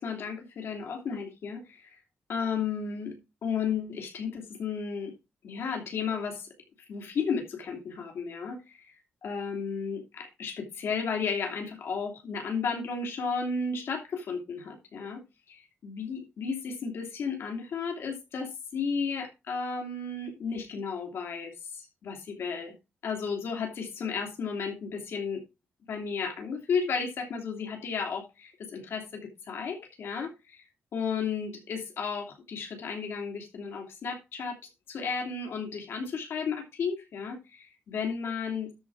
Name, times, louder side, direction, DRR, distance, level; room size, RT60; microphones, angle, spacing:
voice 1, 0.0-2.0 2.3-3.2 3.4-5.1 5.4-6.5 6.9-8.9 9.2-15.2 15.5-22.7 23.0-25.4 25.9-30.6 30.9-34.6 34.9-38.7, left 5 dB, 75° left, 2 dB, 2.7 m, -33 dB
13.0 x 4.6 x 4.7 m, 0.26 s
wide cardioid pair, 145°, 4 cm